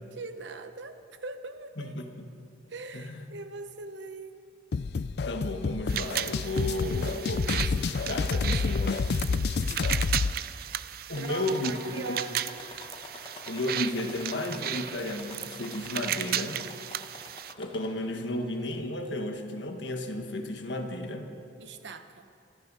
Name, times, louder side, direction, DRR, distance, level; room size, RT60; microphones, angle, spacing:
voice 1, 0.1-1.0 1.2-2.1 2.7-4.4 9.7-10.4 11.1-12.6 21.6-22.3, right 3 dB, 75° right, 9 dB, 0.9 m, -41 dB
voice 2, 1.8-2.2 2.9-3.1 5.2-7.7 8.1-9.2 11.1-12.2 13.5-16.6 17.6-21.3, left 1 dB, 75° left, 5 dB, 1.5 m, -33 dB
sound 1, 4.7-10.3, left 4 dB, 60° left, 0.4 m, -29 dB
sound 2, 5.9-17.5, right 11 dB, 50° right, 0.4 m, -35 dB
sound 3, 11.1-18.2 18.7-19.3 20.1-20.2 20.6-20.7, left 3 dB, 25° left, 1.2 m, -48 dB
26.0 x 10.0 x 5.5 m, 2.5 s
head